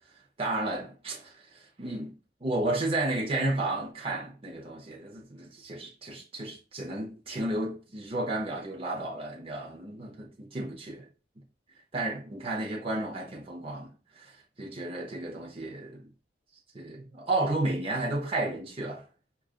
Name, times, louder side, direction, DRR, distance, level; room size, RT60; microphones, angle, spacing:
voice 1, 0.4-11.1 11.9-16.1 16.7-19.0, right 2 dB, 30° right, 0.8 m, -33 dB
4.9 x 2.5 x 2.4 m
head